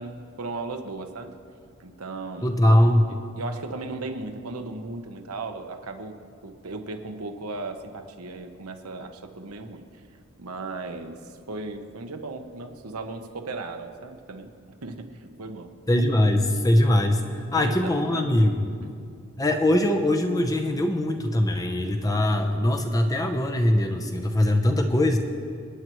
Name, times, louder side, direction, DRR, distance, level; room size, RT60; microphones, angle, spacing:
voice 1, 0.0-1.3 1.8-2.5 3.1-6.2 6.4-9.8 10.4-14.5 14.8-15.7 16.5-16.7 17.5-18.3 18.8-18.9, right 3 dB, 85° right, 5 dB, 1.0 m, -36 dB
voice 2, 2.4-3.1 15.9-18.7 19.4-25.2, left 1 dB, 15° left, 5 dB, 0.7 m, -22 dB
28.0 x 9.4 x 3.1 m, 2.4 s
head